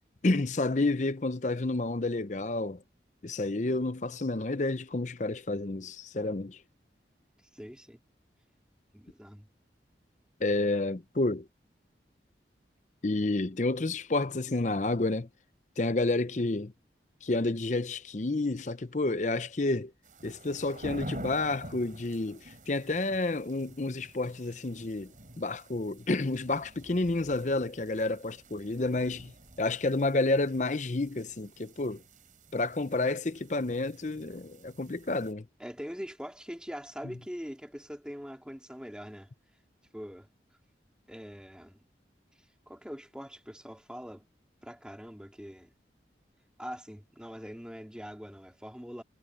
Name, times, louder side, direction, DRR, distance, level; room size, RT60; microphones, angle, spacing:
voice 1, 0.2-2.8 3.2-6.6 10.4-11.5 13.0-15.3 15.8-16.7 17.2-19.9 20.2-29.3 29.6-32.0 32.5-35.5, left 2 dB, 40° left, 0.7 m, -30 dB
voice 2, 7.5-8.0 8.9-9.5 35.6-39.3 39.9-40.3 41.1-41.8 42.4-44.2 44.6-45.7 46.6-49.0, equal, 5° right, 3.2 m, -43 dB
sound 1, 20.0-35.3, right 1 dB, 45° right, 6.9 m, -49 dB
head